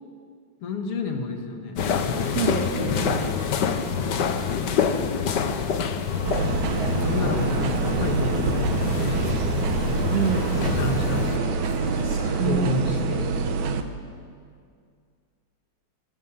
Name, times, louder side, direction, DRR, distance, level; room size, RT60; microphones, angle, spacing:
voice 1, 0.6-2.4 4.0-4.9 7.0-9.4 10.6-11.4 12.4-13.3, left 4 dB, 50° left, 3 dB, 2.8 m, -31 dB
sound 1, 1.8-11.4, left 7 dB, 90° left, 0.9 m, -27 dB
voice 2, 2.3-3.3 10.1-10.5 12.4-13.0, right 6 dB, 55° right, -2 dB, 2.6 m, -27 dB
sound 2, 6.1-12.9, right 2 dB, 20° right, 2.7 m, -36 dB
sound 3, 6.2-13.8, right 4 dB, 75° right, 2.5 m, -26 dB
26.0 x 16.0 x 7.5 m, 2.2 s
omnidirectional pair, 3.6 m